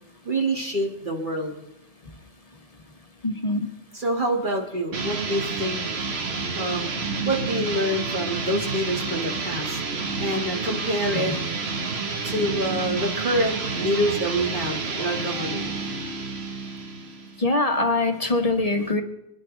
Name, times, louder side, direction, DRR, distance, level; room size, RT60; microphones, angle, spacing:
voice 1, 0.2-1.6 3.9-5.8 6.6-6.9 7.3-9.8 10.2-11.3 12.2-15.7, right 1 dB, 40° right, 0 dB, 2.1 m, -26 dB
voice 2, 3.2-3.7 11.1-11.4 17.4-19.0, left 2 dB, 30° left, 5 dB, 1.3 m, -23 dB
sound 1, 4.9-17.4, right 4 dB, 60° right, 1.4 m, -29 dB
25.5 x 10.5 x 3.3 m, 0.88 s
omnidirectional pair, 1.2 m